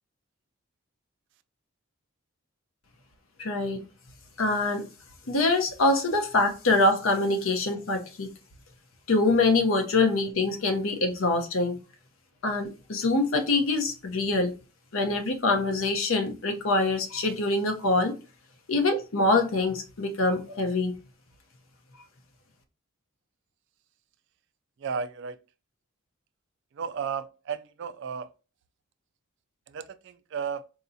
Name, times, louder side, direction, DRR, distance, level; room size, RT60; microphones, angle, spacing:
voice 1, 3.4-3.8 4.4-4.8 5.3-8.3 9.1-11.8 12.4-14.5 14.9-18.1 18.7-20.9, left 2 dB, 70° left, 0.8 m, -24 dB
voice 2, 24.8-25.4 26.8-28.3 29.7-30.6, right 6 dB, 55° right, 0.3 m, -34 dB
4.5 x 2.8 x 2.6 m
head